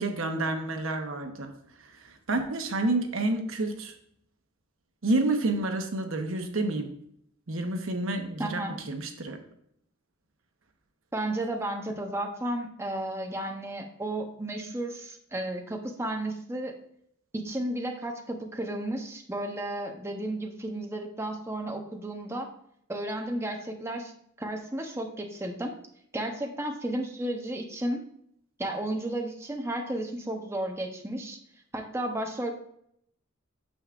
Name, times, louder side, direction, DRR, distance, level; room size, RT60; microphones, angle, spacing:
voice 1, 0.0-1.5 1.8-3.9 5.0-6.9 7.5-8.6 8.9-9.4, right 2 dB, 80° right, 5 dB, 1.0 m, -29 dB
voice 2, 8.4-8.8 11.1-16.7 17.3-22.5 22.9-24.1 24.4-25.7 26.1-28.0 28.6-31.4 31.7-32.5, right 1 dB, 15° right, 2 dB, 0.9 m, -33 dB
9.0 x 7.1 x 2.5 m, 0.70 s
head